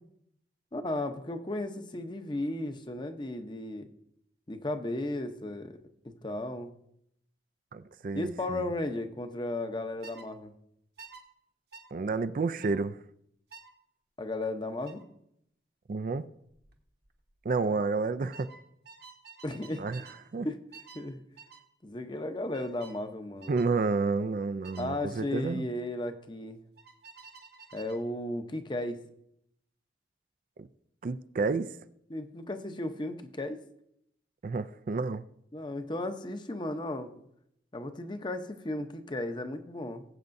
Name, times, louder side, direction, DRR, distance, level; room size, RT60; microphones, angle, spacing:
voice 1, 0.7-3.9 4.5-5.8 6.0-6.7 8.1-10.5 14.2-15.0 17.7-17.8 19.4-19.9 20.4-20.6 20.9-21.2 21.8-23.5 24.8-26.6 27.7-29.0 32.1-33.6 35.5-37.2 37.7-40.0, left 1 dB, 25° left, 0.8 m, -35 dB
voice 2, 7.7-8.7 11.9-13.0 15.9-16.2 17.4-18.5 19.8-20.0 20.3-20.5 23.5-25.7 30.6-30.7 31.0-31.7 34.4-35.2, right 4 dB, 50° right, 0.4 m, -30 dB
sound 1, 10.0-10.3 11.0-11.2 11.7-11.9 12.6-12.8 13.5-13.7 14.8-15.1 16.5-16.8 17.0-17.4 18.3-20.2 20.7-21.1 21.4-21.7 22.5-23.0 23.4-23.7 24.6-24.9 26.8-28.0, right 5 dB, 65° right, 1.3 m, -51 dB
20.0 x 8.0 x 2.6 m
head